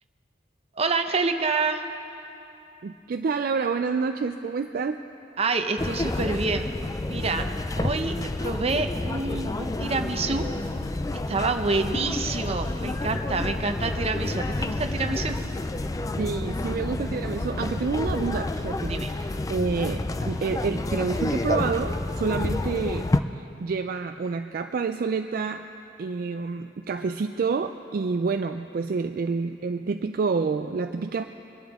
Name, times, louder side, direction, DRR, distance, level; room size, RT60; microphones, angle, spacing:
voice 1, 0.8-1.8 5.4-6.6 7.1-7.4 7.8-10.4 11.3-15.4 18.9-19.1, right 3 dB, 35° right, 6 dB, 0.8 m, -27 dB
voice 2, 2.8-5.0 16.2-23.1 23.3-25.6 26.0-31.3, right 4 dB, 55° right, 7 dB, 0.4 m, -28 dB
sound 1, 5.8-23.2, left 2 dB, 20° left, 0.4 m, -29 dB
23.0 x 11.5 x 3.6 m, 2.8 s
head